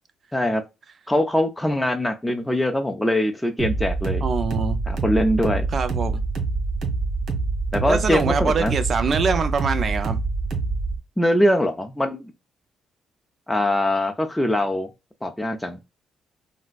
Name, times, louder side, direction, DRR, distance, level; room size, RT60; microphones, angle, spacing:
voice 1, 1.1-4.2 4.9-5.7 7.7-8.7 11.2-12.2 13.5-14.9 15.2-15.8, left 1 dB, 5° left, 0.5 m, -22 dB
sound 1, 3.6-11.0, right 3 dB, 70° right, 1.3 m, -26 dB
voice 2, 4.2-4.8 5.7-6.1 7.9-10.2, right 5 dB, 45° right, 0.6 m, -24 dB
3.8 x 2.1 x 2.4 m
cardioid pair, 90°, 0 cm